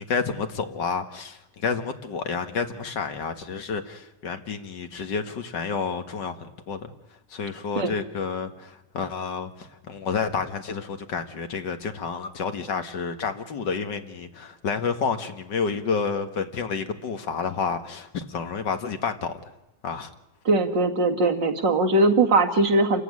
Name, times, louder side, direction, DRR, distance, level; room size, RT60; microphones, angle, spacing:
voice 1, 0.0-6.9 7.3-19.5 19.8-20.1, left 5 dB, 80° left, 2.3 m, -30 dB
voice 2, 20.4-23.0, right 2 dB, 90° right, 2.8 m, -20 dB
28.5 x 14.5 x 9.8 m
omnidirectional pair, 1.9 m